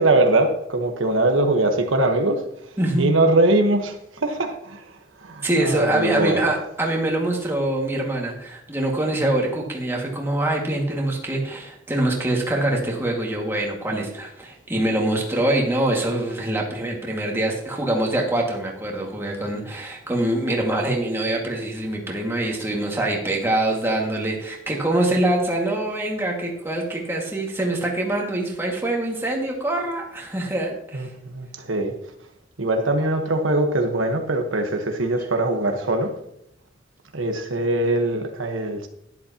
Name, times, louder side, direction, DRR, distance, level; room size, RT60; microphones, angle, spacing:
voice 1, 0.0-2.4 3.0-4.8 5.2-6.5 30.9-31.9 32.6-36.1 37.1-38.9, right 2 dB, 80° right, 4 dB, 1.3 m, -22 dB
voice 2, 2.8-3.1 5.4-31.1, right 1 dB, 10° right, -1 dB, 2.0 m, -24 dB
12.0 x 11.0 x 2.9 m, 0.77 s
head